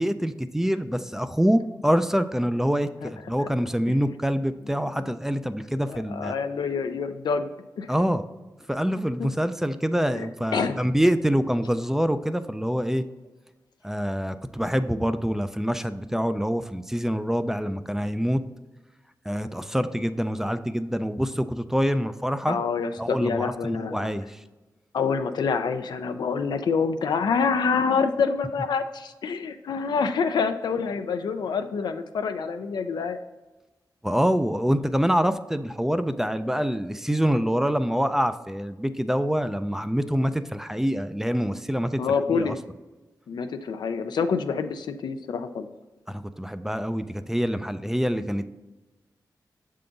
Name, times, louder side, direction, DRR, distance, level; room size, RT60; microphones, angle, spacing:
voice 1, 0.0-6.3 7.9-8.2 8.7-13.0 13.8-18.4 19.3-22.6 23.0-24.3 34.0-42.0 42.3-42.6 46.1-48.4, equal, 5° right, 11 dB, 0.3 m, -25 dB
voice 2, 5.9-7.5 7.8-7.9 9.2-9.3 10.2-10.8 22.5-24.1 24.9-33.2 42.0-42.6 43.3-45.7, left 5 dB, 85° left, 8 dB, 0.4 m, -27 dB
6.7 x 3.7 x 3.8 m, 1.1 s
cardioid pair, 65°, 7 cm